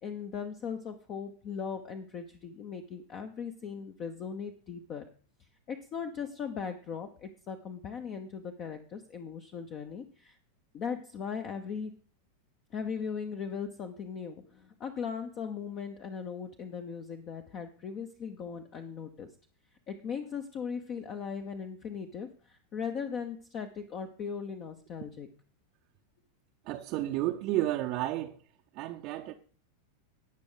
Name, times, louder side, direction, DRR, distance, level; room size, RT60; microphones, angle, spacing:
voice 1, 0.0-5.0 5.7-10.4 10.7-11.9 12.7-19.3 19.9-25.3, left 6 dB, 35° left, 1.0 m, -38 dB
voice 2, 26.7-28.4 28.7-29.3, right 15 dB, 40° right, 0.7 m, -31 dB
18.5 x 6.2 x 3.9 m
figure-of-eight pair, 90°, 0 cm